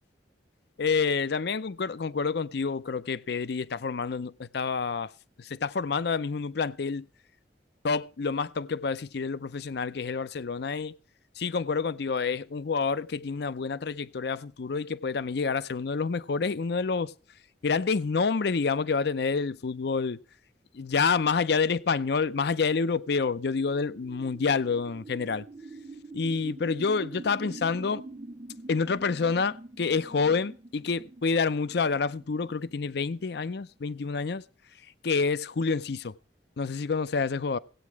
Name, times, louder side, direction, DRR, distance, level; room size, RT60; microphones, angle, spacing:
voice 1, 0.8-5.1 5.4-7.1 7.8-11.0 11.4-17.1 17.6-20.2 20.7-25.4 26.1-28.0 28.7-34.4 35.0-36.1 36.6-37.6, left 5 dB, 65° left, 0.5 m, -28 dB
sound 1, 21.8-33.8, right 2 dB, 25° right, 0.7 m, -46 dB
17.0 x 8.5 x 4.6 m
head